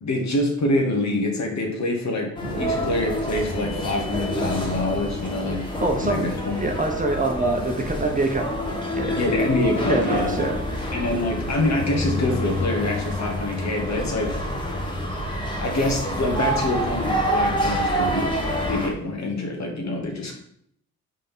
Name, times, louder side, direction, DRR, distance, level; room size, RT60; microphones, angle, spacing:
voice 1, 0.0-2.3 2.6-5.6 6.0-6.7 9.2-10.4 10.9-14.3 15.6-20.3, left 2 dB, 40° left, 1 dB, 1.8 m, -25 dB
sound 1, 2.4-6.1, equal, 90° left, 1.3 m, -37 dB
sound 2, 2.4-18.9, equal, 10° left, 1.8 m, -27 dB
voice 2, 5.8-9.2 9.9-10.9, right 2 dB, 20° right, 2 dB, 1.2 m, -26 dB
5.3 x 3.9 x 5.7 m, 0.68 s
figure-of-eight pair, 45°, 41 cm